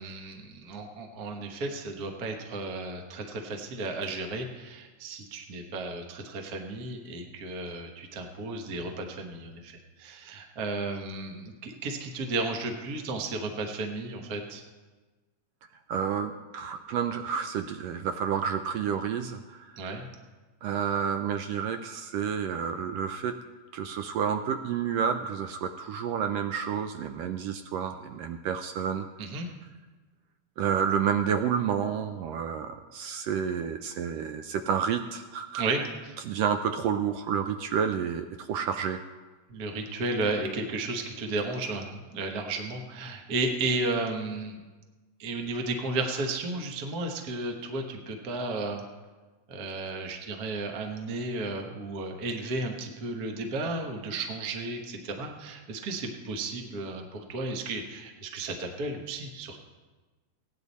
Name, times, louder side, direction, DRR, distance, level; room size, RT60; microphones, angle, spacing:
voice 1, 0.0-14.6 19.8-20.1 29.2-29.5 35.6-35.8 39.5-44.6 45.2-48.8 49.5-59.6, right 2 dB, 55° right, 3 dB, 1.0 m, -33 dB
voice 2, 15.9-19.9 20.6-23.4 23.7-29.1 30.6-35.6 36.2-39.0, right 7 dB, 80° right, 8 dB, 1.4 m, -30 dB
16.0 x 10.0 x 4.1 m, 1.3 s
omnidirectional pair, 3.3 m